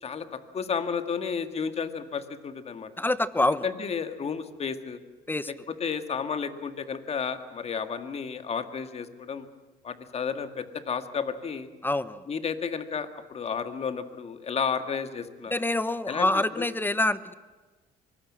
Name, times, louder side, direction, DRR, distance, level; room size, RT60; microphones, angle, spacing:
voice 1, 0.5-2.9 3.6-5.0 5.5-9.5 9.8-11.7 12.3-15.5 16.1-16.7, left 6 dB, 40° left, 9 dB, 1.9 m, -32 dB
voice 2, 3.0-3.6 5.3-5.5 11.8-12.2 15.5-17.3, left 2 dB, 10° left, 15 dB, 0.9 m, -26 dB
24.5 x 20.0 x 7.5 m, 1.3 s
cardioid pair, 110°, 17 cm